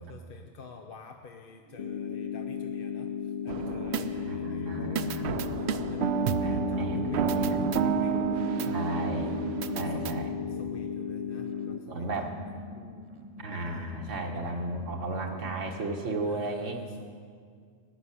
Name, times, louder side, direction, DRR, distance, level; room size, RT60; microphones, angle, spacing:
voice 1, 0.0-8.8 9.2-10.0 10.5-12.3 12.7-13.1 13.4-13.6 16.2-17.1, left 5 dB, 55° left, 4 dB, 0.8 m, -49 dB
sound 1, 1.6-16.5, right 1 dB, 25° right, 1.0 m, -48 dB
sound 2, 1.8-11.8, left 7 dB, 85° left, 0.3 m, -35 dB
sound 3, 3.5-4.5 5.0-10.2, right 7 dB, 70° right, 0.8 m, -30 dB
voice 2, 4.2-5.4 6.4-7.7 8.7-9.3 9.7-10.3 11.9-12.4 13.4-16.8, right 2 dB, 90° right, 1 dB, 1.7 m, -34 dB
15.0 x 6.8 x 10.0 m, 2.1 s
omnidirectional pair, 1.2 m